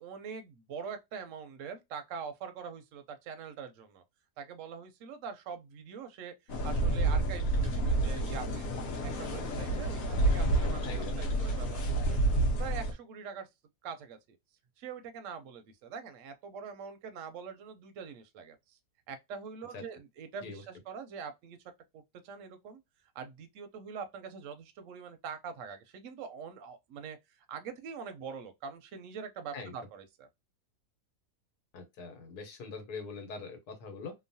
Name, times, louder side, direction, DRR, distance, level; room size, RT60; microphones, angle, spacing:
voice 1, 0.0-4.0 4.4-8.7 9.0-12.2 12.6-13.5 13.8-14.4 14.8-18.8 19.1-21.6 21.9-22.8 23.1-30.3, right 6 dB, 65° right, 0.8 m, -44 dB
sound 1, 6.5-12.9, right 2 dB, 65° left, 1.1 m, -29 dB
voice 2, 10.8-11.2 19.7-19.8 20.4-20.6 29.5-29.7 31.7-34.1, left 4 dB, 80° left, 1.4 m, -42 dB
3.0 x 2.1 x 2.6 m
omnidirectional pair, 1.7 m